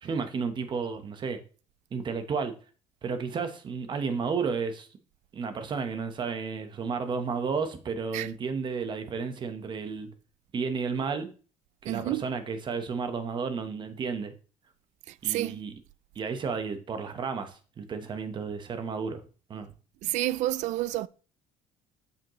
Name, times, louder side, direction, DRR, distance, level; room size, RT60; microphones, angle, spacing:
voice 1, 0.0-1.4 1.9-2.5 3.0-4.9 5.3-10.1 10.5-11.3 11.8-14.3 15.2-15.7 16.1-19.2 19.5-19.7, right 5 dB, 35° right, 1.2 m, -32 dB
voice 2, 11.8-12.2 15.1-15.6 20.0-21.1, right 15 dB, 65° right, 0.4 m, -29 dB
7.3 x 6.7 x 3.1 m
cardioid pair, 125°, 13 cm